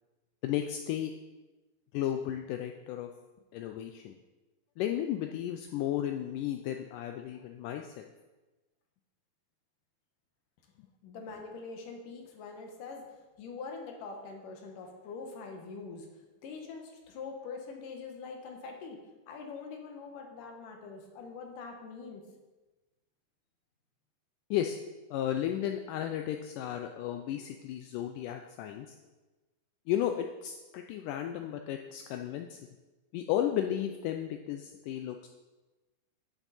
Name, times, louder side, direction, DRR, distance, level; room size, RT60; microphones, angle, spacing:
voice 1, 0.4-1.1 1.9-3.1 3.5-4.2 4.8-8.0 24.5-24.8 25.1-28.9 29.9-32.6 33.1-35.3, left 11 dB, 90° left, 5 dB, 1.8 m, -34 dB
voice 2, 11.0-13.0 13.4-19.0 19.3-22.2, left 4 dB, 70° left, 3 dB, 2.5 m, -44 dB
9.9 x 7.0 x 4.1 m, 1.2 s
omnidirectional pair, 4.3 m